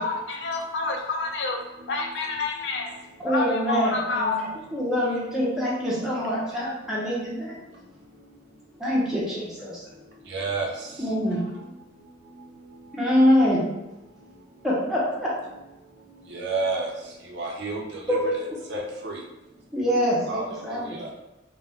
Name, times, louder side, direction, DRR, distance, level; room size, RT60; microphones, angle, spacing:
voice 1, 0.0-1.6 1.9-3.0 3.2-4.5, left 3 dB, 60° left, 2 dB, 0.4 m, -28 dB
voice 2, 3.2-7.5 8.8-9.8 11.0-11.4 12.9-13.6 14.6-15.3 18.1-18.5 19.7-21.1, equal, ahead, -7 dB, 0.6 m, -25 dB
voice 3, 10.3-10.7 16.3-16.9 17.3-17.8 18.1-18.2 18.7-19.2 20.3-21.1, right 3 dB, 60° right, -1 dB, 0.5 m, -30 dB
2.3 x 2.1 x 3.5 m, 1.0 s
head